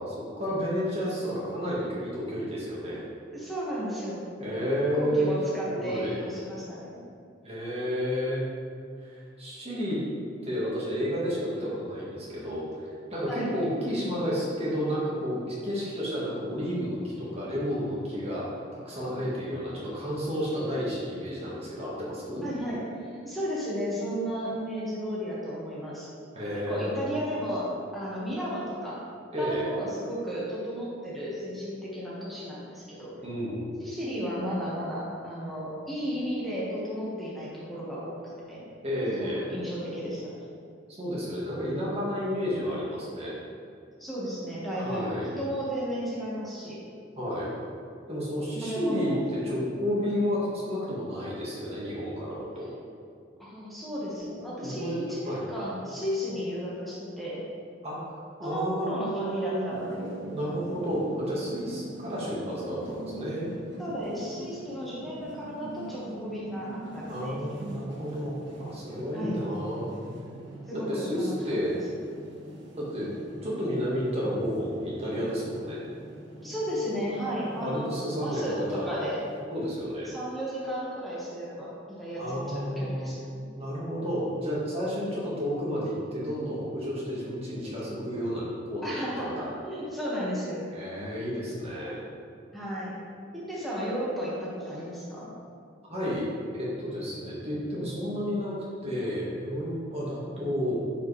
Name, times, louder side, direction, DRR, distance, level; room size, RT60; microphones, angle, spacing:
voice 1, 0.0-3.1 4.4-5.4 5.7-6.2 7.4-8.5 9.0-10.0 10.4-22.4 26.3-27.1 29.3-29.7 33.2-33.6 38.8-39.4 41.0-43.4 44.7-45.3 47.2-47.5 48.1-52.7 54.6-55.0 55.2-55.4 57.8-59.8 60.3-63.5 67.1-69.9 70.7-71.7 72.8-73.1 73.4-75.8 77.6-79.1 79.5-80.1 82.2-83.1 83.6-89.5 90.7-92.0 95.9-96.3 96.5-100.8, equal, 35° right, -7 dB, 1.7 m, -31 dB
voice 2, 3.3-4.2 4.9-6.9 13.3-13.5 22.4-22.8 23.1-26.1 26.7-29.0 29.4-33.2 33.8-38.2 38.5-38.6 39.2-40.4 44.0-46.8 48.6-49.2 53.4-57.4 58.4-60.2 63.8-67.4 69.1-69.4 70.7-71.6 76.4-77.9 78.2-79.2 80.1-83.4 88.8-89.3 89.6-90.6 92.5-93.0 93.3-95.3, equal, ahead, -8 dB, 1.7 m, -34 dB
sound 1, 59.7-79.4, right 1 dB, 65° right, 1.4 m, -44 dB
10.5 x 4.9 x 3.4 m, 2.3 s
head